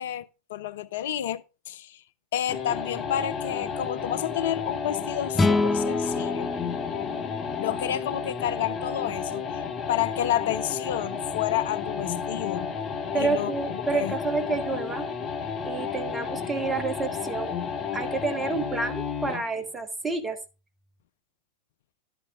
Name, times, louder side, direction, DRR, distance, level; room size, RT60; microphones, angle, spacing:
voice 1, 0.0-2.0 2.3-6.5 7.6-12.7 13.2-14.1, left 11 dB, 55° left, 0.5 m, -30 dB
sound 1, 2.5-19.5, left 6 dB, 30° left, 1.4 m, -32 dB
sound 2, 5.3-8.7, left 3 dB, 10° left, 0.6 m, -28 dB
voice 2, 13.1-15.1 15.6-17.5 17.9-20.4, right 3 dB, 15° right, 1.6 m, -29 dB
11.5 x 9.3 x 2.5 m
figure-of-eight pair, 90°, 0 cm